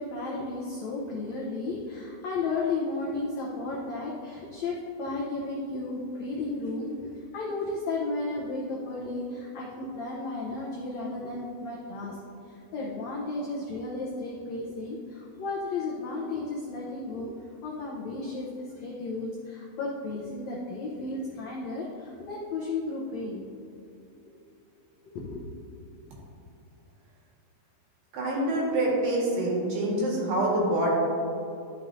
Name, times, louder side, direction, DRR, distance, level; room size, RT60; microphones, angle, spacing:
voice 1, 0.0-6.9 7.3-12.2 12.5-17.3 17.6-23.5 25.0-25.4, left 3 dB, 85° left, -4 dB, 1.6 m, -33 dB
voice 2, 28.1-30.9, right 1 dB, 70° right, -4 dB, 3.4 m, -26 dB
12.5 x 6.3 x 2.7 m, 2.7 s
omnidirectional pair, 4.4 m